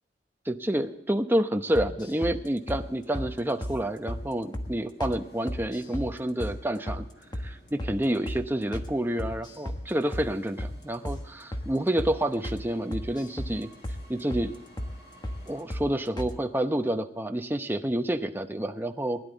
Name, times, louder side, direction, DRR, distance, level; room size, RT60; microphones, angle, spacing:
voice 1, 0.5-7.1 7.4-13.7 14.1-14.5 15.5-19.2, right 1 dB, 10° right, 6 dB, 0.8 m, -29 dB
sound 1, 1.7-2.4 2.7-2.8 3.1-3.3 3.6-3.8 4.1-4.2 4.5-4.7 5.0-5.2 5.5-6.1 6.4-6.6 6.9-7.0 7.3-7.5 7.8-8.0 8.3-8.4 8.7-8.9 9.2-9.8 10.1-10.3 10.6-10.7 11.0-11.2 11.5-11.7 12.0-12.1 12.4-12.6 12.9-13.5 13.8-14.0 14.3-14.5 14.8-14.9 15.2-15.4 15.7-15.9 16.2-16.3, equal, 25° left, 1.3 m, -33 dB
sound 2, 2.6-15.6, equal, 65° left, 7.3 m, -56 dB
20.0 x 11.0 x 4.0 m, 0.85 s
head